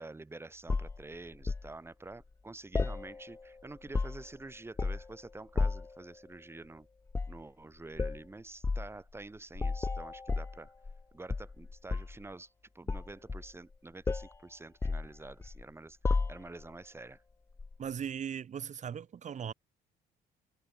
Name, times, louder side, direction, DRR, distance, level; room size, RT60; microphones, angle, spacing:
voice 1, 0.0-6.9 7.3-10.7 11.1-17.2, right 2 dB, 15° right, 3.1 m, -48 dB
sound 1, 0.7-1.7 2.7-3.5 3.8-4.4 4.8-5.1 5.6-6.0 7.1-7.4 8.0-8.2 8.6-8.9 9.6-11.0 11.3-12.2 12.9-13.7 14.1-14.4 14.8-15.6 16.0-16.7 17.6-17.8, left 3 dB, 15° left, 0.6 m, -33 dB
voice 2, 17.8-19.5, right 8 dB, 45° right, 7.0 m, -38 dB
cardioid pair, 110°, 17 cm